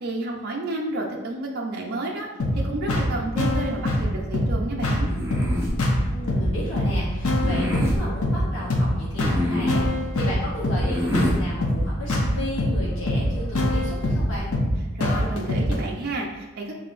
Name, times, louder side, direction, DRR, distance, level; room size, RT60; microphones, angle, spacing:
voice 1, 0.0-5.1 14.9-16.7, right 2 dB, 45° right, -1 dB, 0.5 m, -31 dB
sound 1, 2.4-15.8, left 1 dB, 90° left, 0.7 m, -24 dB
sound 2, 5.0-5.8 7.3-8.0 9.1-9.9 10.8-11.4, left 1 dB, 10° right, 0.7 m, -27 dB
voice 2, 6.0-14.5, left 1 dB, 65° left, -7 dB, 1.0 m, -33 dB
5.5 x 3.7 x 2.5 m, 1.1 s
head